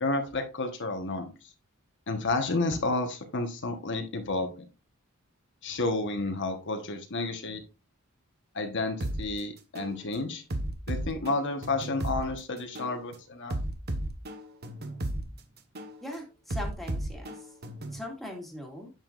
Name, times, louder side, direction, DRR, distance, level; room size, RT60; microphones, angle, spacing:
voice 1, 0.0-1.3 2.1-4.6 5.6-7.6 8.5-10.4 10.9-13.6, left 2 dB, 60° left, 5 dB, 1.2 m, -31 dB
sound 1, 9.0-9.2 9.7-9.9 10.5-12.2 12.7-12.9 13.5-15.2 15.7-15.9 16.5-18.0, right 1 dB, 50° right, 1.2 m, -33 dB
voice 2, 16.0-17.5 17.9-18.9, left 1 dB, ahead, -1 dB, 2.3 m, -40 dB
9.1 x 7.4 x 2.5 m, 0.31 s
head